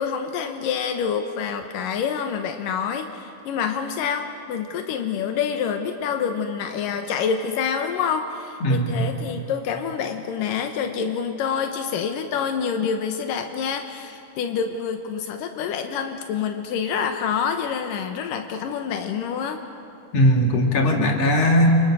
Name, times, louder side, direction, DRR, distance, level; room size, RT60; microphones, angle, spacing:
voice 1, 0.0-19.6, left 7 dB, 90° left, 6 dB, 2.8 m, -27 dB
voice 2, 8.6-9.0 20.1-21.8, equal, 50° left, 2 dB, 3.6 m, -18 dB
29.5 x 27.0 x 6.3 m, 2.8 s
omnidirectional pair, 3.7 m